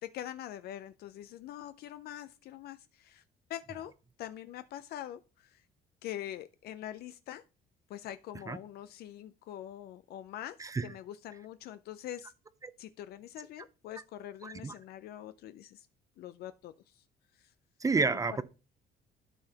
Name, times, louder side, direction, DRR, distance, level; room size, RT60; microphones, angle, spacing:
voice 1, 0.0-3.2 3.5-3.9 4.2-5.6 6.0-7.4 7.9-12.3 12.8-15.9 16.2-17.0 17.4-17.5, left 12 dB, 70° left, 0.4 m, -44 dB
voice 2, 10.6-10.9 14.4-14.7 17.8-18.4, right 4 dB, 20° right, 0.5 m, -30 dB
12.0 x 4.8 x 2.8 m
cardioid pair, 110°, 17 cm